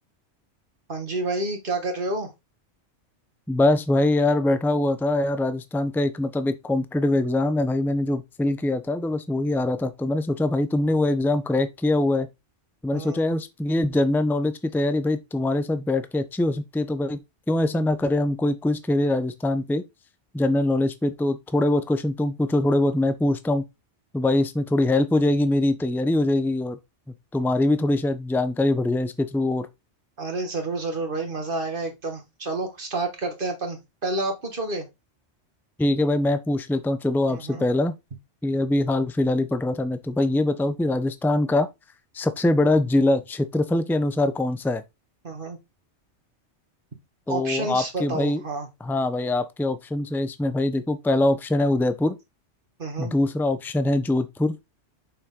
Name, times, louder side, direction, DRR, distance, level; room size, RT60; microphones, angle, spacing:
voice 1, 0.9-2.3 12.9-13.3 30.2-34.9 37.3-37.7 45.2-45.6 47.3-48.7 52.8-53.1, right 2 dB, 45° right, 2.0 m, -29 dB
voice 2, 3.5-12.3 12.8-17.2 17.5-19.8 20.3-23.6 24.1-26.8 27.3-29.7 35.8-37.9 38.4-41.7 42.1-44.8 47.3-48.4 48.8-52.2 53.0-54.6, left 2 dB, ahead, 0.5 m, -23 dB
6.9 x 6.0 x 3.8 m
omnidirectional pair, 1.2 m